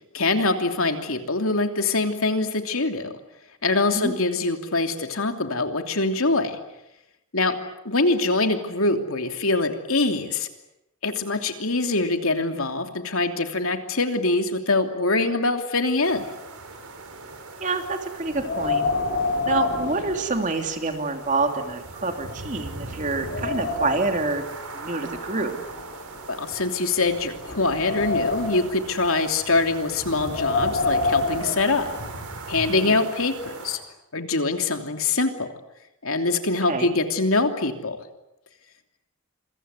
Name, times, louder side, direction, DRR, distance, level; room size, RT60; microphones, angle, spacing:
voice 1, 0.1-3.1 3.6-6.6 7.3-7.5 7.8-10.5 11.0-16.3 26.3-31.9 32.5-33.8 34.1-35.5 36.0-38.0, left 3 dB, 70° left, 5 dB, 3.0 m, -24 dB
sound 1, 16.0-33.8, right 2 dB, 90° right, 5.4 m, -40 dB
voice 2, 17.6-18.8 19.4-24.4 24.7-25.6 32.7-32.9 36.7-36.9, right 3 dB, 35° right, 5 dB, 2.9 m, -27 dB
Wind, 18.2-20.9 21.2-21.3 22.0-22.1 22.6-24.2 25.1-26.6 27.2-28.8 30.0-32.2, left 3 dB, 55° left, 6.2 m, -28 dB
27.5 x 23.5 x 8.2 m, 0.87 s
head